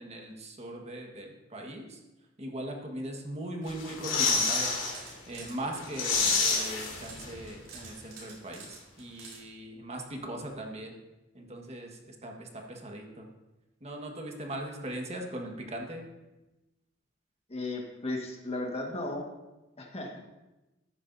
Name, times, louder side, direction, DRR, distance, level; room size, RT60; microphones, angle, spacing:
voice 1, 0.0-2.0 2.4-4.7 5.3-11.0 11.3-13.3 13.8-16.0, right 1 dB, 35° right, 2 dB, 1.5 m, -40 dB
sound 1, 3.7-5.0 5.3-5.4 5.7-7.5 7.8-7.9, left 4 dB, 80° left, 2.5 m, -28 dB
sound 2, 4.9-5.6 5.9-9.4, right 4 dB, 90° right, 3.6 m, -48 dB
voice 2, 17.5-19.2 19.8-20.2, left 2 dB, 30° left, 1 dB, 1.6 m, -35 dB
13.5 x 9.9 x 2.7 m, 1.0 s
head